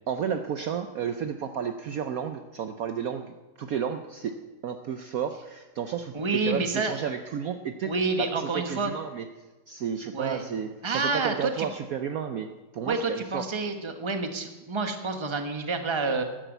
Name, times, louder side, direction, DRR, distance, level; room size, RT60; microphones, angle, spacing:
voice 1, 0.1-9.3 9.7-13.4, right 7 dB, 65° right, 8 dB, 1.0 m, -32 dB
voice 2, 6.1-7.0 7.9-8.9 10.1-10.5 10.8-11.7 12.8-16.2, right 3 dB, 20° right, 6 dB, 1.1 m, -28 dB
12.5 x 10.5 x 8.0 m, 1.2 s
omnidirectional pair, 1.9 m